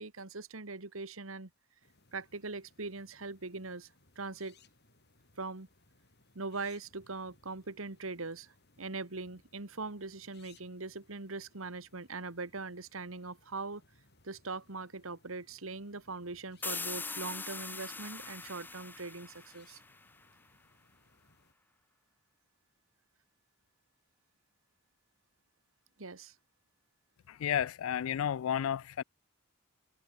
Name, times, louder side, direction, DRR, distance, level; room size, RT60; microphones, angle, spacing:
voice 1, 0.0-1.5 2.1-3.9 4.2-4.6 5.4-5.7 6.4-13.8 14.2-19.8 26.0-26.3, right 3 dB, 80° right, 2.0 m, -41 dB
sound 1, 1.8-21.5, left 3 dB, 55° left, 6.0 m, -67 dB
sound 2, 16.6-20.2, left 4 dB, 10° left, 0.5 m, -42 dB
voice 2, 27.3-29.0, left 9 dB, 80° left, 0.3 m, -32 dB
head